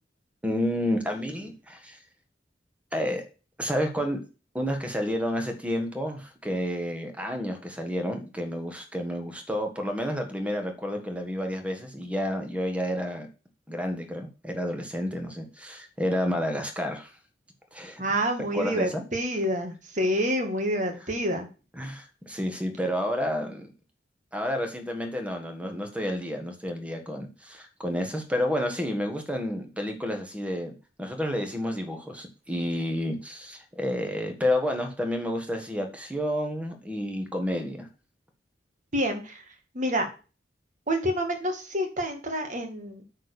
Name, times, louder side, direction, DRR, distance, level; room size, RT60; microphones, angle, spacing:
voice 1, 0.4-2.0 2.9-3.3 3.6-4.2 4.5-13.3 13.7-17.1 17.7-18.0 18.5-19.0 21.7-23.7 24.3-30.7 31.0-37.9, equal, 5° right, 5 dB, 1.6 m, -30 dB
voice 2, 18.0-21.5 38.9-39.4 39.7-40.1 40.9-43.0, equal, 45° right, 4 dB, 2.1 m, -28 dB
9.0 x 4.4 x 6.8 m, 0.33 s
head